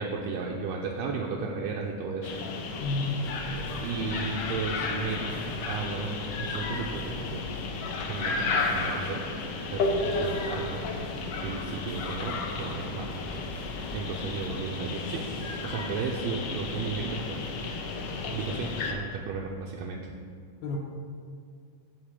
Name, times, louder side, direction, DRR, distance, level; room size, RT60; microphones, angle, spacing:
voice 1, 0.0-2.3 3.8-5.3 5.7-7.4 8.1-9.2 9.7-10.8 11.4-13.1 13.9-15.2 15.6-17.4 18.3-20.1, right 4 dB, 75° right, -2 dB, 1.7 m, -34 dB
sound 1, 2.2-18.9, left 3 dB, 70° left, 1.5 m, -33 dB
voice 2, 2.8-3.3 20.6-20.8, left 2 dB, 90° left, -1 dB, 2.2 m, -30 dB
sound 2, 3.2-18.1, equal, 5° left, 0.9 m, -46 dB
9.3 x 3.6 x 7.1 m, 2.2 s
omnidirectional pair, 3.4 m